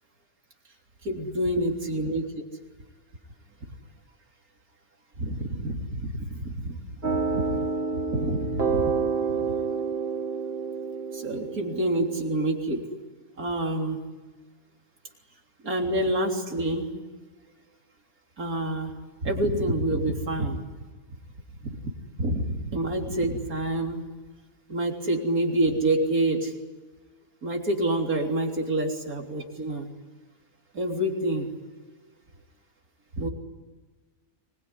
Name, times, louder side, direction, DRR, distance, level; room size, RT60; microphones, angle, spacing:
voice 1, 1.0-2.2 5.2-6.8 7.0-7.6 7.9-8.9 9.5-9.6 11.1-12.8 13.4-14.0 15.6-16.9 18.4-18.9 19.2-20.6 21.7-21.9 22.2-24.0 24.7-26.5 27.4-29.9 30.7-31.5 33.2-33.3, right 1 dB, 85° right, 2 dB, 4.0 m, -27 dB
sound 1, 7.0-12.5, right 5 dB, 45° right, 2.6 m, -29 dB
24.5 x 21.5 x 9.8 m, 1.4 s
omnidirectional pair, 1.5 m